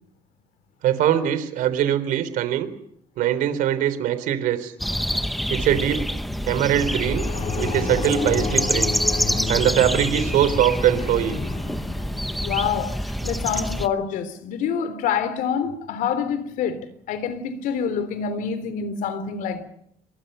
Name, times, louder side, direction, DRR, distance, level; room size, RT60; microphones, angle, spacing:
voice 1, 0.8-2.7 3.2-4.7 5.5-6.1 6.5-7.2 7.6-8.9 9.5-11.4 13.2-13.3, right 11 dB, 85° right, 3.6 m, -22 dB
sound 1, 4.8-13.9, equal, ahead, 0.9 m, -26 dB
sound 2, 6.0-13.1, left 6 dB, 45° left, 2.8 m, -32 dB
voice 2, 12.4-19.6, left 7 dB, 85° left, 3.6 m, -27 dB
29.0 x 24.5 x 5.6 m
cardioid pair, 170°, 14 cm